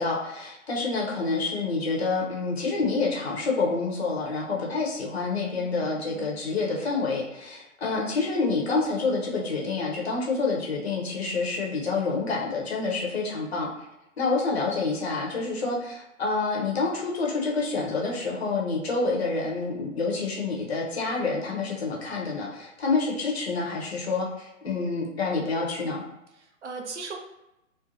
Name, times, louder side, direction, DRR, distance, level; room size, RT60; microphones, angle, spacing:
voice 1, 0.0-13.7 14.2-26.0, left 3 dB, 50° left, -2 dB, 0.7 m, -28 dB
voice 2, 5.6-6.4 26.3-27.2, right 4 dB, 60° right, 2 dB, 0.6 m, -39 dB
2.6 x 2.4 x 2.5 m, 0.90 s
figure-of-eight pair, 125°, 40 cm